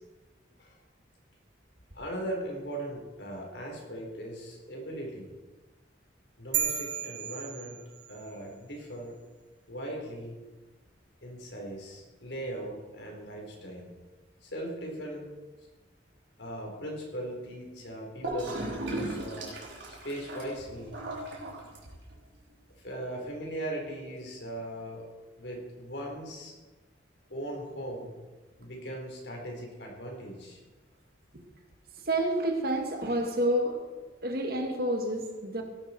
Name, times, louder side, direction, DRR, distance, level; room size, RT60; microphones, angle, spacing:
voice 1, 1.9-5.3 6.4-7.8 8.1-9.1 9.7-10.3 11.2-13.9 14.4-15.2 15.6-15.7 16.4-19.5 20.0-20.9 22.8-25.0 25.4-26.6 27.3-28.1 28.6-30.6, right 1 dB, 70° left, 0 dB, 4.1 m, -39 dB
sound 1, 6.5-8.3, right 8 dB, 90° right, 2.5 m, -33 dB
Gurgling / Toilet flush, 18.2-22.2, right 1 dB, 75° right, 3.7 m, -37 dB
voice 2, 32.1-33.8 34.2-35.6, right 1 dB, 55° right, 3 dB, 2.1 m, -29 dB
17.5 x 11.5 x 4.5 m, 1.3 s
head